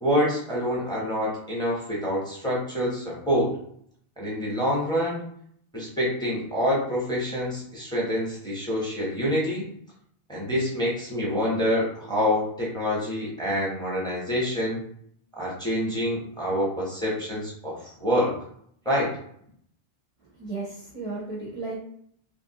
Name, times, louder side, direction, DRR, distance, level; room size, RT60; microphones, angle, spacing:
voice 1, 0.0-3.5 4.2-5.2 5.7-9.7 10.3-14.8 15.4-18.3 18.8-19.1, equal, 5° left, -5 dB, 0.8 m, -26 dB
voice 2, 20.3-21.8, right 3 dB, 40° right, -6 dB, 0.6 m, -34 dB
2.9 x 2.5 x 2.8 m, 0.65 s
omnidirectional pair, 1.0 m